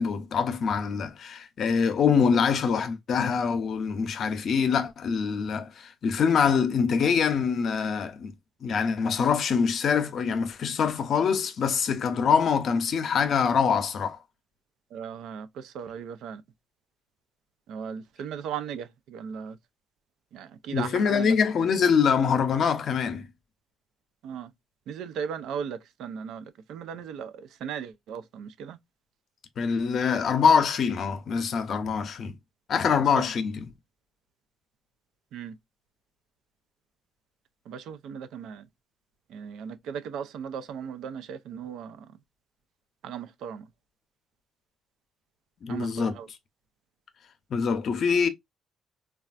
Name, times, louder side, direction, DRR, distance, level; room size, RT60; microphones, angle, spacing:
voice 1, 0.0-8.3 8.6-14.2 20.7-23.3 29.6-32.3 32.7-33.7 45.6-46.2 47.5-48.3, left 6 dB, 60° left, 0.5 m, -24 dB
voice 2, 14.9-15.5 15.8-16.4 17.7-18.8 19.1-19.5 20.3-20.9 21.2-21.3 24.2-24.5 24.9-26.4 26.7-27.3 27.6-28.8 35.3-35.5 37.7-38.6 39.3-41.9 43.0-43.6 45.7-46.1, right 7 dB, 85° right, 0.3 m, -36 dB
3.2 x 2.3 x 2.4 m
cardioid pair, 90°, 0 cm